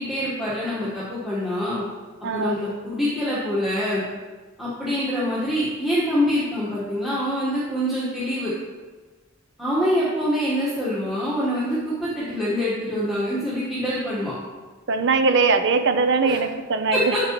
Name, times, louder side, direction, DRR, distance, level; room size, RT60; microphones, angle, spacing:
voice 1, 0.0-1.8 2.3-4.0 4.6-8.5 9.6-14.3 16.2-16.4 16.9-17.2, equal, ahead, -10 dB, 1.3 m, -25 dB
voice 2, 2.2-2.5 14.9-17.2, right 4 dB, 60° right, 9 dB, 0.6 m, -21 dB
7.6 x 7.5 x 3.0 m, 1.3 s
head